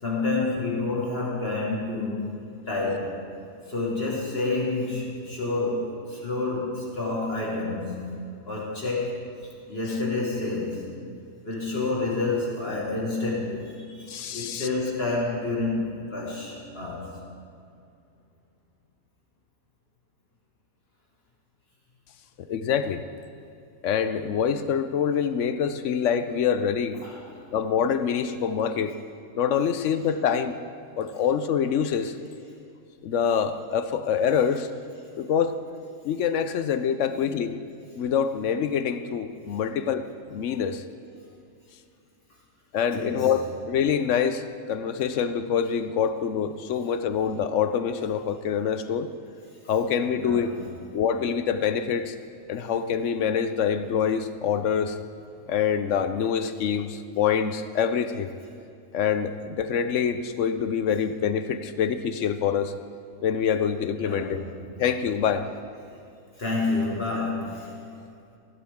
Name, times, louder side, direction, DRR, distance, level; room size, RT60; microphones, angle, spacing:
voice 1, 0.0-2.3 2.7-3.2 3.7-9.3 9.7-10.9 11.4-17.2 27.0-27.3 37.0-37.2 42.9-43.3 50.1-50.6 64.0-64.4 66.4-67.7, left 3 dB, 45° left, -4 dB, 2.1 m, -29 dB
voice 2, 14.1-14.7 22.4-23.0 23.8-27.0 27.5-29.0 29.4-30.6 31.0-32.2 33.0-34.7 35.2-35.6 36.0-37.6 38.0-40.8 42.7-49.1 49.7-50.5 50.9-52.2 52.5-55.0 55.5-58.3 58.9-62.7 63.2-64.4 64.8-65.5, left 7 dB, 70° left, 11 dB, 0.9 m, -25 dB
16.5 x 11.5 x 3.6 m, 2.5 s
omnidirectional pair, 1.4 m